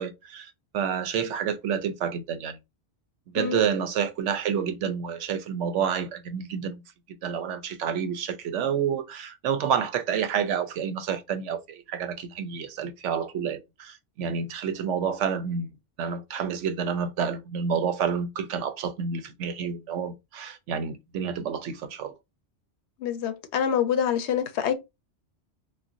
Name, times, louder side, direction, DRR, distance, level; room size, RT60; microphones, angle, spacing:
voice 1, 0.0-2.6 3.3-6.8 7.2-15.7 16.0-22.1, right 7 dB, 85° right, 0.9 m, -29 dB
voice 2, 23.0-24.7, left 8 dB, 75° left, 0.8 m, -26 dB
4.1 x 2.2 x 2.5 m
omnidirectional pair, 1.2 m